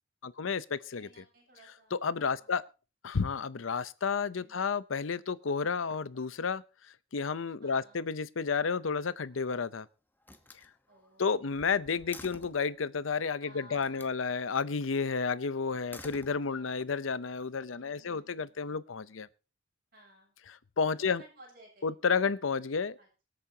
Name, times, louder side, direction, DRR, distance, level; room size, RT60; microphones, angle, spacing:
voice 1, 0.2-1.1 1.9-2.6 3.0-6.6 7.1-9.9 11.2-19.3 20.8-21.2 21.8-23.0, left 5 dB, 90° left, 0.7 m, -31 dB
voice 2, 0.9-2.0 2.2-2.6 4.3-4.8 7.6-8.0 10.9-11.6 13.4-14.2 16.2-16.7 17.7-18.6 19.9-20.3 20.9-21.9 23.0-23.2, right 1 dB, 50° right, 7.4 m, -58 dB
Slam, 9.2-9.7 10.2-12.7 13.7-14.2 15.7-16.8, left 2 dB, 10° left, 1.1 m, -51 dB
24.5 x 8.6 x 2.8 m
head